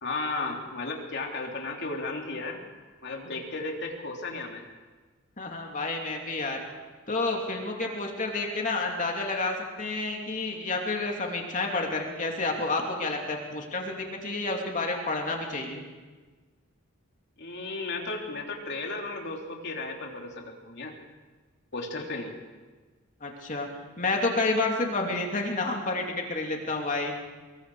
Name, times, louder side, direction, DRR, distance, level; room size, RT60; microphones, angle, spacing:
voice 1, 0.0-2.6 3.0-4.6 17.4-20.9 21.7-22.4, left 3 dB, 55° left, 0 dB, 3.4 m, -34 dB
voice 2, 5.4-6.6 7.1-15.8 23.2-23.7 24.0-27.1, left 3 dB, 40° left, 1 dB, 2.8 m, -30 dB
25.0 x 22.0 x 5.0 m, 1.3 s
head